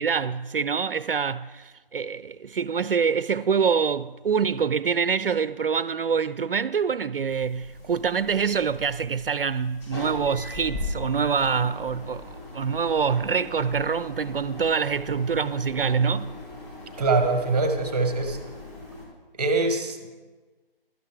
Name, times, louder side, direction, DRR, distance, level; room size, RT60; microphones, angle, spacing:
voice 1, 0.0-16.3, right 6 dB, 70° right, 0.4 m, -25 dB
sound 1, 7.3-19.0, left 2 dB, 25° left, 3.7 m, -39 dB
voice 2, 17.0-18.4 19.4-20.2, right 3 dB, 10° right, 1.0 m, -23 dB
12.5 x 10.5 x 3.7 m
figure-of-eight pair, 165°, 30 cm